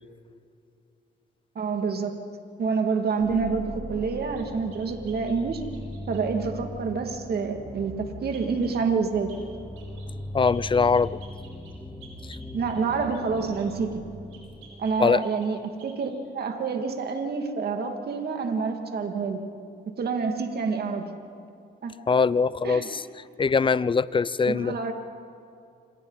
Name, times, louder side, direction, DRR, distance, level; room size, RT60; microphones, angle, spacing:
voice 1, 1.6-2.1 2.6-5.6 6.1-9.3 12.5-14.0 14.8-19.4 20.0-21.1 21.8-21.9 22.6-22.9 24.5-24.9, right 5 dB, 55° right, 4 dB, 2.3 m, -27 dB
sound 1, 3.2-15.1, left 1 dB, ahead, 2.1 m, -40 dB
sound 2, 4.4-6.3 8.3-8.8 9.3-9.5 9.8-10.1 10.4-13.7 14.3-15.5 15.8-16.1, right 5 dB, 80° right, 6.5 m, -53 dB
voice 2, 10.3-11.2 12.2-12.4 15.0-15.2 22.1-23.1 23.4-24.9, left 5 dB, 25° left, 19 dB, 0.5 m, -22 dB
27.5 x 26.0 x 4.1 m, 2.6 s
cardioid pair, 90°, 20 cm